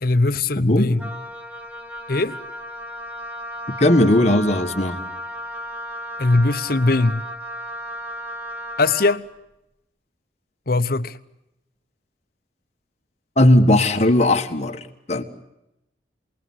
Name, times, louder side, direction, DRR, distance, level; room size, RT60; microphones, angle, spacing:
voice 1, 0.0-1.1 2.1-2.4 6.2-7.3 8.8-9.3 10.7-11.2, left 2 dB, 55° left, 0.9 m, -20 dB
voice 2, 0.6-1.0 3.8-5.0 13.4-15.2, left 1 dB, 40° left, 1.7 m, -17 dB
Wind instrument woodwind instrument, 1.0-9.3, equal, 10° right, 2.0 m, -34 dB
27.0 x 20.0 x 9.5 m
head